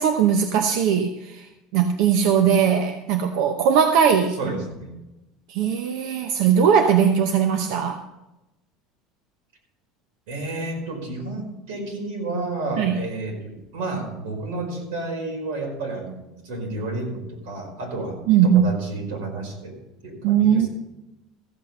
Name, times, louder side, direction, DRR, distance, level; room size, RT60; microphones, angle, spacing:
voice 1, 0.0-4.4 5.5-8.0 12.8-13.0 18.3-18.8 20.2-20.7, right 8 dB, 60° right, 6 dB, 0.8 m, -19 dB
voice 2, 4.4-5.0 10.3-19.7 20.0-20.7, right 2 dB, 90° right, 0 dB, 5.0 m, -31 dB
15.0 x 8.1 x 5.5 m, 0.97 s
cardioid pair, 175°, 0 cm